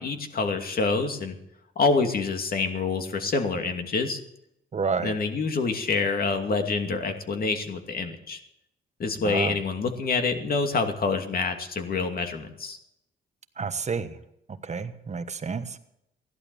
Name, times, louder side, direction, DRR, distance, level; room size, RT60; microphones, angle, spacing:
voice 1, 0.0-1.4 1.8-4.2 5.0-8.4 9.0-12.8, left 4 dB, 50° left, 5 dB, 2.5 m, -27 dB
voice 2, 4.7-5.1 9.2-9.5 13.6-14.2 14.6-15.8, right 5 dB, 35° right, 10 dB, 1.3 m, -30 dB
15.5 x 11.5 x 7.0 m, 0.79 s
cardioid pair, 90°, 20 cm